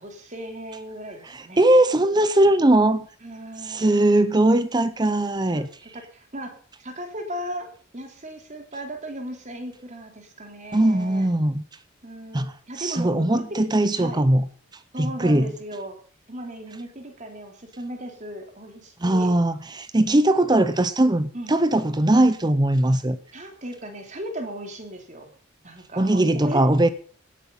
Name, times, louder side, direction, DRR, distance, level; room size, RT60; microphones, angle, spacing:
voice 1, 0.0-1.6 3.2-4.0 5.5-5.6 5.9-6.5 6.8-11.3 12.0-13.4 14.0-14.2 14.9-16.0 16.3-19.3 21.3-21.6 23.3-25.3 25.6-26.6, right 1 dB, 35° right, 4 dB, 3.3 m, -36 dB
voice 2, 1.2-3.1 3.6-5.7 10.7-11.6 12.3-14.5 15.0-15.5 19.0-23.2 26.0-26.9, right 1 dB, 20° right, 13 dB, 0.7 m, -20 dB
17.5 x 9.6 x 5.7 m, 0.44 s
head